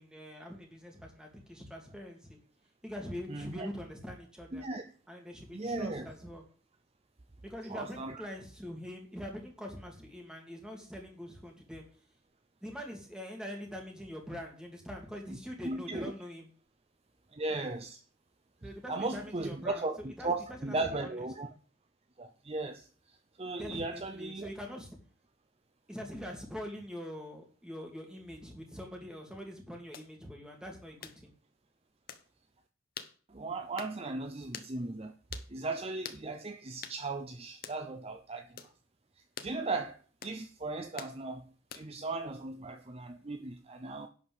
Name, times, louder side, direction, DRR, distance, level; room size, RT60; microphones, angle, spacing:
voice 1, 0.0-2.4 2.8-4.7 5.1-6.4 7.4-11.8 12.6-16.5 18.6-21.3 23.6-24.9 25.9-31.3, equal, 5° right, 2.6 m, -44 dB
voice 2, 3.3-3.7 4.5-4.8 5.5-6.1 7.7-8.3 15.6-16.1 17.3-18.0 18.6-21.5 22.2-24.5 33.3-35.1 35.5-38.7 39.4-44.1, right 3 dB, 30° right, 0.7 m, -37 dB
sound 1, 29.9-30.1 31.0-31.2 32.1-32.2 33.0-33.1 33.8-34.0 34.5-34.7 35.3-35.5 36.0-36.2 36.8-37.0 37.6-37.8 38.6-38.7 39.4-39.5 40.2-40.4 41.0-41.2 41.7-42.0, left 7 dB, 45° left, 1.0 m, -45 dB
11.5 x 5.2 x 7.8 m
head